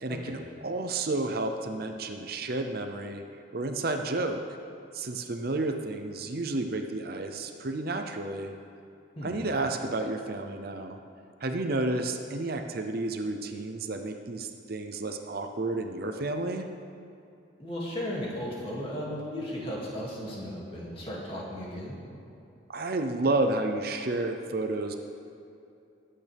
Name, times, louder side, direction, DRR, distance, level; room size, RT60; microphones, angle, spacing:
voice 1, 0.0-3.2 3.5-4.4 4.9-8.5 9.2-11.0 11.4-16.7 22.7-25.0, right 2 dB, 50° right, 5 dB, 0.7 m, -31 dB
voice 2, 9.2-9.5 17.6-21.9, equal, 30° left, -5 dB, 2.4 m, -35 dB
20.5 x 8.7 x 3.5 m, 2.7 s
head